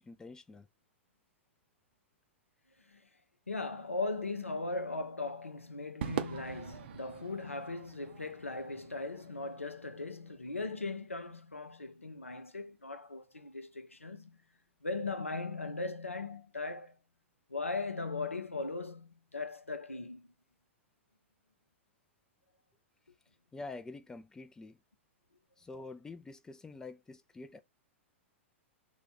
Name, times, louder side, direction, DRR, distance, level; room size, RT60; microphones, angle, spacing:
voice 1, 0.0-0.7 23.5-24.8 25.6-27.6, left 3 dB, 10° left, 0.3 m, -47 dB
voice 2, 3.5-14.4 14.8-17.0 17.5-20.3, left 3 dB, 85° left, 0.6 m, -38 dB
Crowd / Fireworks, 6.0-10.5, right 10 dB, 55° right, 0.6 m, -43 dB
2.5 x 2.3 x 4.0 m
figure-of-eight pair, 100°, 7 cm